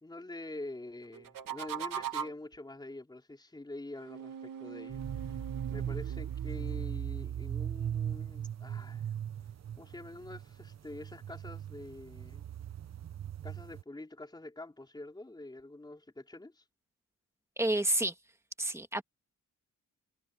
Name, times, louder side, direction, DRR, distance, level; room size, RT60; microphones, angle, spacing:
voice 1, 0.0-5.4 5.7-9.1 9.8-12.4 13.4-16.6, left 2 dB, 15° left, 4.1 m, -46 dB
sound 1, 1.1-2.5 4.0-6.8, right 8 dB, 85° right, 2.4 m, -41 dB
sound 2, 4.9-13.8, right 9 dB, 55° right, 1.2 m, -38 dB
voice 2, 17.6-18.1 18.6-19.0, right 1 dB, 10° right, 1.9 m, -29 dB
wide cardioid pair, 140°, 32 cm